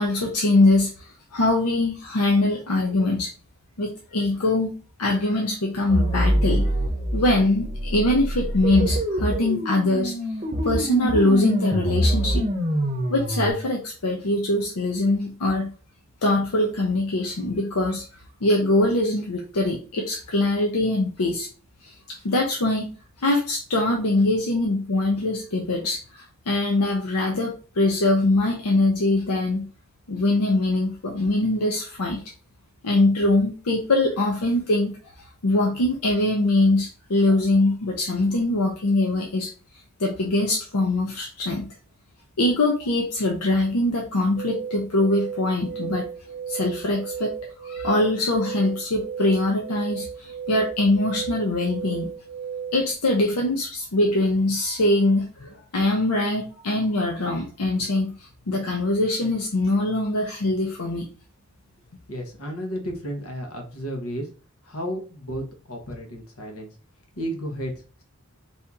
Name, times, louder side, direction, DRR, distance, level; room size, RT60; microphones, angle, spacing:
voice 1, 0.0-3.3 3.8-4.7 5.0-6.7 7.1-10.1 10.6-12.4 13.1-15.7 16.2-18.0 18.4-21.5 21.8-22.9 23.2-29.7 30.1-32.2 32.8-39.5 40.0-41.7 42.4-46.0 46.5-47.3 47.6-52.1 52.7-61.1, left 2 dB, 90° left, 1 dB, 0.7 m, -23 dB
sound 1, 5.9-13.5, equal, 30° right, 0.8 m, -25 dB
sound 2, 44.4-52.9, right 7 dB, 60° right, 0.5 m, -34 dB
voice 2, 62.1-64.3 64.6-66.7 67.1-68.0, equal, 75° left, 2 dB, 1.1 m, -33 dB
4.3 x 2.8 x 3.6 m, 0.37 s
head